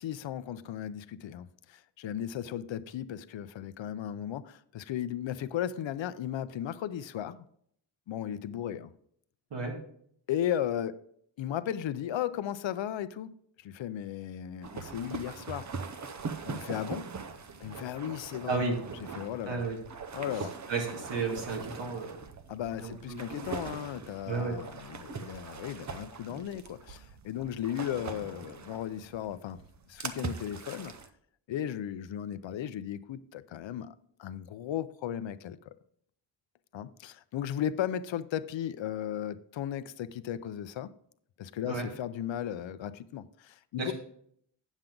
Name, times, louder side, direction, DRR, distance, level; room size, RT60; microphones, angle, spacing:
voice 1, 0.0-7.5 8.1-8.9 10.3-11.0 11.4-15.7 16.4-17.1 17.6-18.6 19.2-19.6 20.1-20.5 22.5-29.6 29.9-30.9 31.5-33.9 34.2-35.6 36.7-40.9 41.4-43.9, left 10 dB, 75° left, 0.6 m, -36 dB
sound 1, 14.6-31.1, right 5 dB, 40° right, 0.7 m, -42 dB
voice 2, 18.5-18.8 19.5-19.8 20.3-22.2 22.8-23.5 24.3-24.6 41.6-41.9 43.8-43.9, right 3 dB, 65° right, 2.1 m, -33 dB
8.9 x 7.3 x 3.8 m
wide cardioid pair, 160°, 46 cm